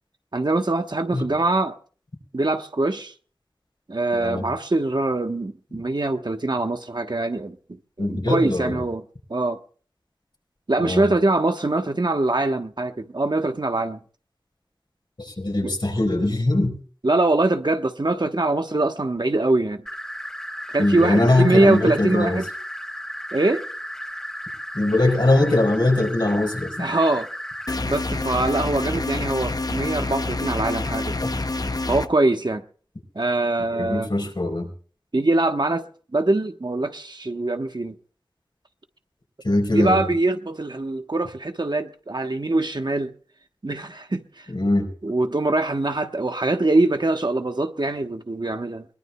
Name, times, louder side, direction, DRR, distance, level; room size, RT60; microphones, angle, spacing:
voice 1, 0.3-1.8 2.3-3.1 3.9-7.6 8.0-9.0 9.3-9.6 10.7-14.0 15.6-15.7 17.0-19.8 20.7-22.5 23.3-23.7 26.8-27.3 27.9-31.2 31.9-32.6 33.1-34.1 35.1-35.8 36.1-37.9 39.7-43.1 43.6-44.5 45.0-48.8, right 2 dB, 65° right, 1.1 m, -23 dB
voice 2, 4.1-4.5 8.0-8.8 10.8-11.0 15.2-16.8 20.8-22.4 24.7-26.9 31.2-31.3 33.7-34.7 39.4-40.0 44.5-44.9, left 2 dB, 70° left, 4.2 m, -21 dB
sound 1, 19.9-27.7, equal, 5° left, 2.4 m, -34 dB
sound 2, 27.7-32.1, left 2 dB, 50° left, 0.7 m, -27 dB
22.0 x 20.0 x 2.3 m
wide cardioid pair, 45°, 8 cm